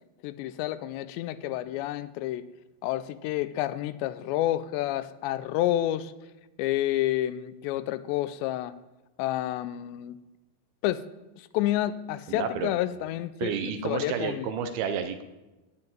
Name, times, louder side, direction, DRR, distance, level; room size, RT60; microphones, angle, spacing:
voice 1, 0.2-2.4 2.8-6.1 6.6-8.8 9.2-10.2 10.8-11.1 11.4-13.5 13.8-14.5, left 14 dB, 85° left, 14 dB, 2.9 m, -29 dB
voice 2, 12.3-12.7 13.4-15.2, right 7 dB, 75° right, 8 dB, 2.5 m, -30 dB
17.5 x 5.8 x 9.0 m, 1.1 s
omnidirectional pair, 5.0 m